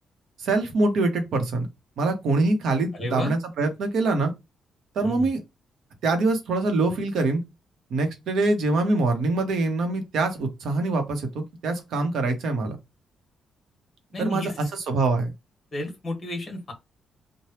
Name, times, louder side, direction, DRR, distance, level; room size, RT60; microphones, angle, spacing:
voice 1, 0.4-1.7 2.0-4.3 4.9-5.4 6.0-7.4 7.9-12.8 14.2-15.3, right 3 dB, 70° right, 0.9 m, -24 dB
voice 2, 2.9-3.3 5.0-5.3 14.1-14.6 15.7-16.7, left 1 dB, 30° left, 1.3 m, -31 dB
3.2 x 2.2 x 2.8 m
cardioid pair, 145°, 0 cm